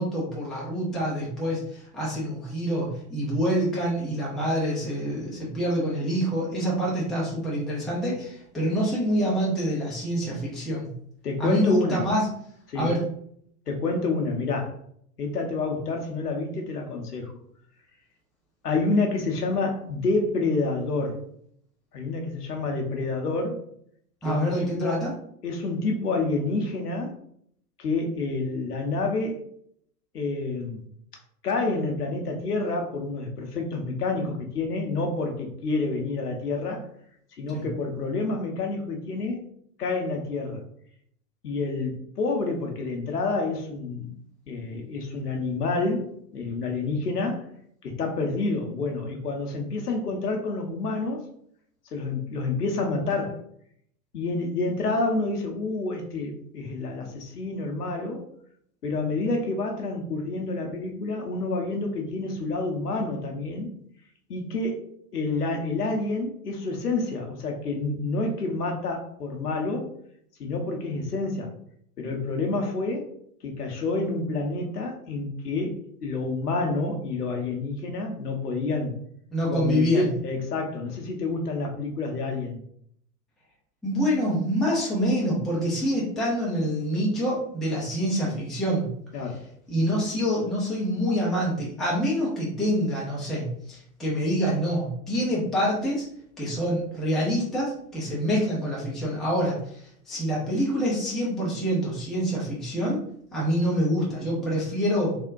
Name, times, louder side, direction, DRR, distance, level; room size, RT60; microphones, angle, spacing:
voice 1, 0.0-10.9 11.4-12.3 12.7-13.0 24.2-25.1 37.5-37.7 79.3-80.0 83.8-88.9 89.7-96.1 96.4-99.6 100.1-103.0 103.3-105.2, equal, ahead, -5 dB, 0.4 m, -26 dB
voice 2, 11.2-12.1 12.7-12.9 13.7-14.7 15.2-17.3 18.6-21.2 21.9-23.6 24.2-25.1 25.4-27.1 27.8-29.4 30.1-30.9 31.4-36.8 37.4-39.4 39.8-40.6 41.4-44.1 44.5-47.4 47.8-51.2 51.9-53.4 54.1-58.3 58.8-63.7 64.3-64.8 65.1-69.9 70.4-71.5 72.0-73.1 73.4-78.9 79.5-82.6 89.1-89.4, left 3 dB, 80° left, 2 dB, 0.8 m, -28 dB
3.4 x 2.1 x 2.5 m, 0.66 s
figure-of-eight pair, 90°, 46 cm